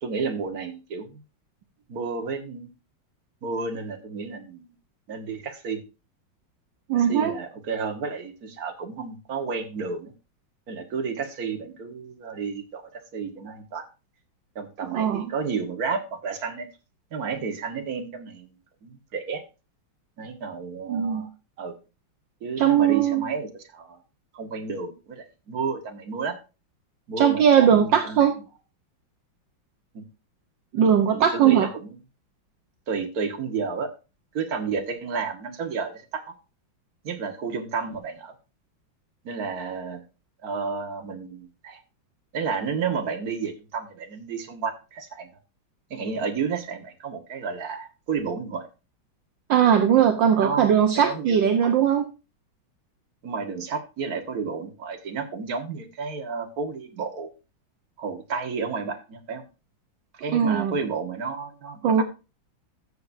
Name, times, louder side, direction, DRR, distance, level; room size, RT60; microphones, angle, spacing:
voice 1, 0.0-1.2 1.9-2.7 3.4-4.7 5.1-5.8 6.9-10.1 10.7-13.8 14.6-16.7 17.1-18.5 18.8-19.4 20.2-21.3 21.6-21.8 22.4-24.0 24.3-26.4 27.1-28.3 29.9-30.0 31.1-31.9 32.9-33.9 34.3-36.3 37.0-38.3 39.3-40.0 40.4-41.8 42.3-45.3 45.9-48.7 49.9-50.0 50.4-51.7 53.2-57.3 58.0-59.4 60.1-62.0, right 5 dB, 50° right, 5 dB, 1.9 m, -31 dB
voice 2, 6.9-7.3 14.9-15.3 20.9-21.3 22.6-23.3 27.2-28.4 30.7-31.7 49.5-52.0 60.3-60.7 61.8-62.0, right 8 dB, 65° right, 5 dB, 1.6 m, -19 dB
14.0 x 6.9 x 2.7 m, 0.29 s
omnidirectional pair, 2.3 m